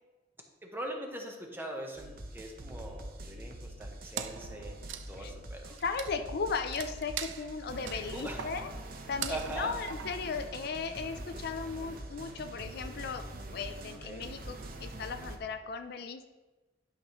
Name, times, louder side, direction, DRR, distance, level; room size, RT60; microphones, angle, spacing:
voice 1, 0.6-4.8 5.1-5.8 7.9-8.4 9.3-9.7 14.0-14.2, right 1 dB, 10° right, 2 dB, 1.0 m, -41 dB
sound 1, 2.0-15.4, right 1 dB, 55° right, 0.8 m, -44 dB
Wood, 4.2-10.9, right 8 dB, 90° right, 0.4 m, -43 dB
voice 2, 5.8-8.7 9.1-16.2, left 5 dB, 60° left, 8 dB, 0.4 m, -37 dB
11.5 x 5.0 x 3.0 m, 1.2 s
head